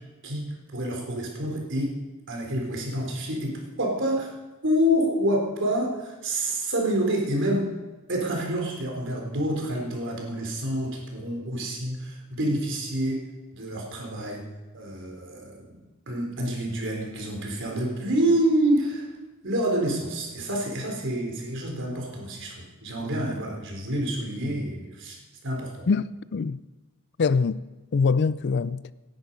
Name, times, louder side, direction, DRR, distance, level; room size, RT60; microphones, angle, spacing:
voice 1, 0.2-1.9 2.3-4.3 4.6-7.7 8.1-13.2 13.5-14.5 14.7-15.8 16.1-19.1 19.4-25.2 25.4-25.9, right 1 dB, 60° right, 3.8 m, -27 dB
voice 2, 25.9-26.6 27.2-27.6 27.9-28.8, left 5 dB, 50° left, 0.4 m, -24 dB
18.0 x 10.5 x 5.4 m
head